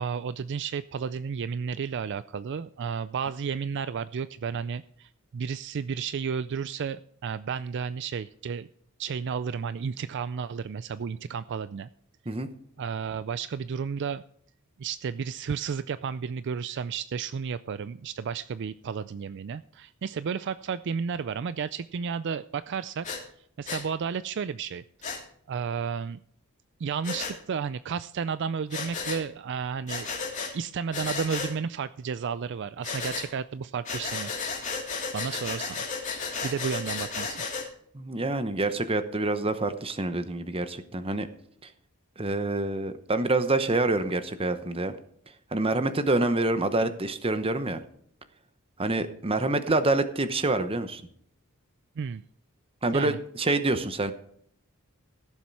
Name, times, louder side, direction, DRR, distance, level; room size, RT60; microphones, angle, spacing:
voice 1, 0.0-8.7 9.0-11.9 12.8-14.2 14.8-23.1 23.6-24.8 25.5-26.2 26.8-30.1 30.5-34.3 35.1-35.8 36.4-37.4 52.0-52.2 52.9-53.2, right 6 dB, 55° right, 14 dB, 0.4 m, -32 dB
Breathing, 23.0-23.2 23.7-23.8 25.0-25.2 27.0-27.3 28.7-29.2 29.9-30.5 30.9-31.5 32.8-33.3 33.8-37.7, left 4 dB, 35° left, 2.7 m, -33 dB
voice 2, 37.9-41.3 42.2-45.0 45.5-47.8 48.8-51.0 52.8-54.1, right 2 dB, 25° right, 10 dB, 0.9 m, -27 dB
16.0 x 7.3 x 4.7 m, 0.66 s
head